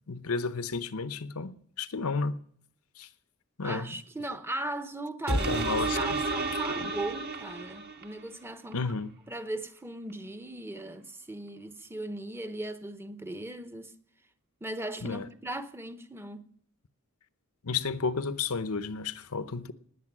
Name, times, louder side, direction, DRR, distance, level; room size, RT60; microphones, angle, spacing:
voice 1, 0.1-2.4 3.0-3.1 3.6-3.9 5.3-6.0 6.8-6.9 8.7-9.1 15.0-15.3 17.6-19.7, left 4 dB, 85° left, 0.9 m, -32 dB
voice 2, 3.6-8.9 9.3-13.9 14.6-16.5, right 1 dB, 10° right, 0.9 m, -38 dB
sound 1, 5.3-8.2 8.7-8.8, right 3 dB, 45° right, 1.6 m, -31 dB
19.5 x 8.4 x 6.1 m
head